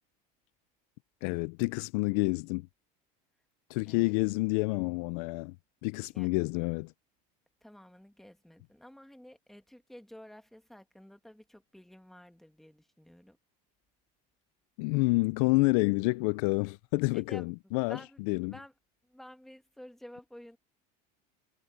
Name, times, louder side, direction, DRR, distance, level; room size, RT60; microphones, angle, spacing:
voice 1, 1.2-2.7 3.7-5.5 5.8-6.9 14.8-18.0 18.3-18.5, left 26 dB, 70° left, 0.4 m, -28 dB
voice 2, 3.9-4.2 6.1-6.3 7.6-13.4 17.1-18.2 18.5-18.7 19.0-20.6, equal, ahead, 1.7 m, -51 dB
cardioid pair, 145°, 19 cm